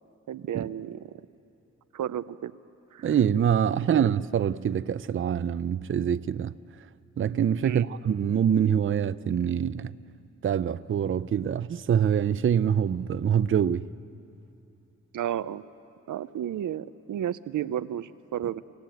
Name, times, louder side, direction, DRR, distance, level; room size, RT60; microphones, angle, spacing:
voice 1, 0.3-1.3 1.9-2.5 2.9-3.1 3.9-4.0 7.6-7.8 15.1-15.6 16.1-18.6, right 10 dB, 90° right, 0.6 m, -32 dB
voice 2, 3.0-6.5 7.2-9.9 10.4-13.8, right 8 dB, 45° right, 0.5 m, -25 dB
26.0 x 16.5 x 9.2 m
wide cardioid pair, 95°, 30 cm